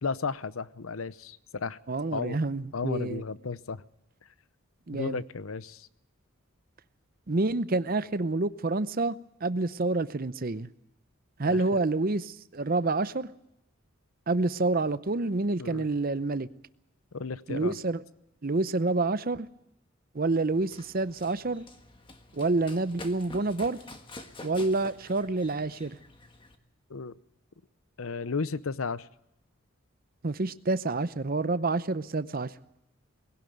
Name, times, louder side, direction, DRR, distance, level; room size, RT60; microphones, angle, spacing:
voice 1, 0.0-1.8 2.1-2.4 2.7-3.8 4.9-5.9 11.5-11.6 15.6-15.9 17.1-17.8 26.9-27.1 28.0-29.1, left 4 dB, 75° left, 0.7 m, -34 dB
voice 2, 1.9-3.2 4.9-5.2 7.3-9.2 9.4-10.7 11.4-13.3 14.3-16.5 17.5-18.0 18.4-19.5 20.1-21.6 22.3-23.8 24.4-26.0 30.2-32.5, right 3 dB, 45° right, 0.7 m, -28 dB
Run, 20.5-26.6, left 2 dB, 25° left, 1.5 m, -48 dB
20.0 x 17.5 x 9.2 m
head